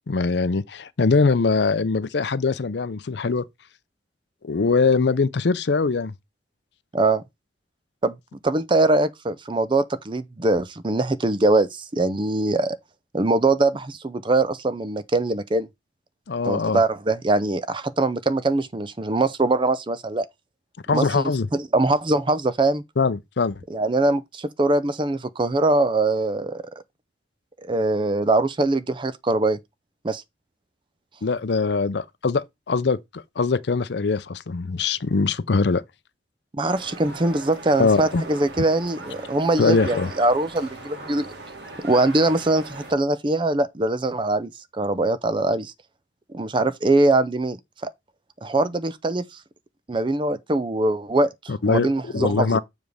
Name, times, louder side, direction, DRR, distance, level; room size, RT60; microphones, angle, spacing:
voice 1, 0.1-3.5 4.4-6.1 16.3-16.8 20.9-21.5 23.0-23.6 31.2-35.8 37.8-38.2 39.6-40.1 51.5-52.6, left 4 dB, 65° left, 0.5 m, -22 dB
voice 2, 6.9-7.2 8.0-8.1 8.4-12.8 13.1-15.7 16.4-20.3 20.9-22.8 23.7-26.6 27.6-29.6 30.0-30.2 36.5-41.3 41.8-45.7 46.3-47.6 47.8-47.9 48.4-49.2 49.9-52.6, right 2 dB, 25° right, 0.5 m, -22 dB
sound 1, 36.7-42.9, right 2 dB, 65° right, 2.0 m, -39 dB
7.2 x 3.4 x 6.3 m
head